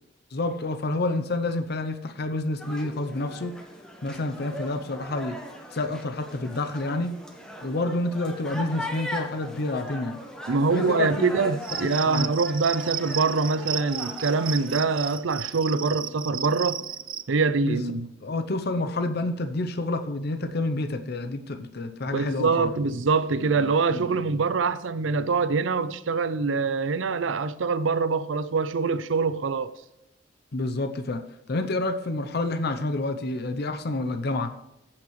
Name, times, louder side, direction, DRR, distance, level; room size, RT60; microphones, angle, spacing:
voice 1, 0.3-3.5 4.0-5.4 5.7-7.1 7.6-10.2 10.7-11.3 11.8-12.3 17.6-17.9 18.2-22.7 23.9-24.1 30.5-31.2 31.5-34.5, left 2 dB, 55° left, 0.7 m, -28 dB
sound 1, 2.6-15.2, equal, 5° left, 1.3 m, -39 dB
voice 2, 10.5-16.8 17.3-18.1 22.1-29.7, right 4 dB, 80° right, 0.6 m, -24 dB
Cricket, 11.6-17.2, right 8 dB, 25° right, 0.3 m, -34 dB
15.0 x 5.9 x 3.2 m
head